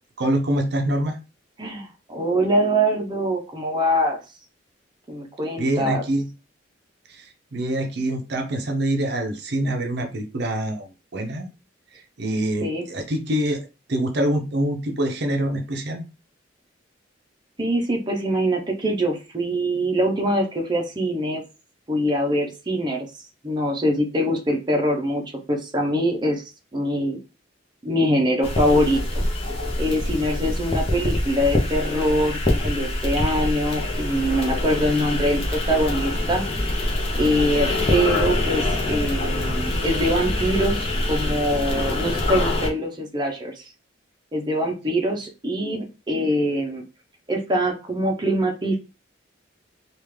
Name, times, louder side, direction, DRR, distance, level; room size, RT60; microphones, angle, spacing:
voice 1, 0.2-1.2 5.6-6.3 7.1-10.9 11.1-11.5 11.9-16.0, right 1 dB, 60° right, 4 dB, 0.6 m, -25 dB
voice 2, 1.6-4.2 5.1-6.0 12.6-12.9 17.6-21.4 21.9-23.1 23.4-25.2 25.5-26.4 26.7-27.2 27.8-29.2 29.8-36.4 37.2-43.6 44.3-46.8 47.3-48.8, equal, 25° right, 1 dB, 0.7 m, -23 dB
sound 1, 28.4-42.7, left 1 dB, 30° left, 0.8 m, -25 dB
3.5 x 2.4 x 3.1 m, 0.30 s
head